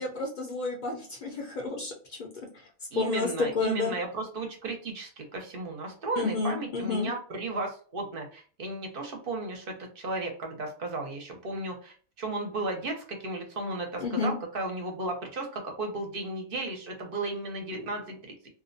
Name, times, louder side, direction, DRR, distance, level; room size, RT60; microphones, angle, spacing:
voice 1, 0.0-2.3 2.9-3.9 6.2-7.1 14.0-14.4, left 4 dB, 55° left, 0 dB, 0.6 m, -30 dB
voice 2, 2.9-18.2, right 2 dB, 60° right, 3 dB, 0.7 m, -34 dB
2.5 x 2.0 x 2.5 m, 0.41 s
omnidirectional pair, 1.1 m